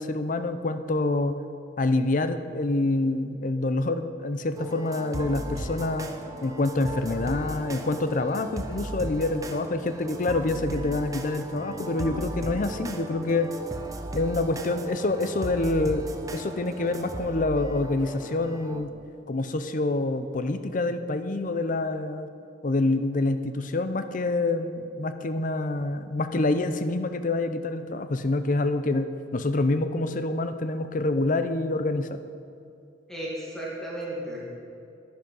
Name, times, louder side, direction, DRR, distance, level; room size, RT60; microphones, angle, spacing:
voice 1, 0.0-1.4 1.8-6.1 6.4-13.5 14.1-16.0 16.3-18.9 19.3-22.3 22.6-32.2, left 2 dB, 45° left, 10 dB, 0.6 m, -26 dB
sound 1, 4.6-18.8, right 1 dB, 20° right, 0.8 m, -36 dB
voice 2, 33.1-34.4, right 1 dB, 5° left, -6 dB, 2.2 m, -34 dB
10.5 x 10.5 x 5.4 m, 2.5 s
head